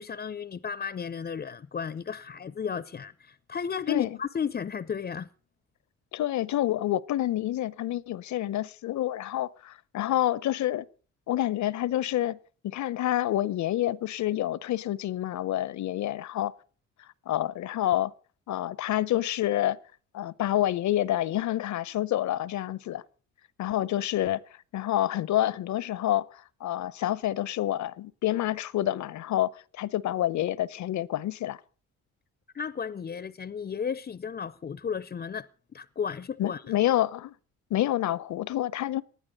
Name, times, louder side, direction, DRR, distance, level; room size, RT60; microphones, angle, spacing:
voice 1, 0.0-5.3 32.5-36.6, left 7 dB, 30° left, 0.6 m, -34 dB
voice 2, 3.9-4.2 6.1-10.9 11.3-12.4 12.6-16.5 17.0-18.1 18.5-19.8 20.1-23.0 23.6-24.4 24.7-31.6 36.4-37.3 37.7-39.0, left 13 dB, 70° left, 0.8 m, -28 dB
19.0 x 12.0 x 5.3 m
cardioid pair, 90°, 30 cm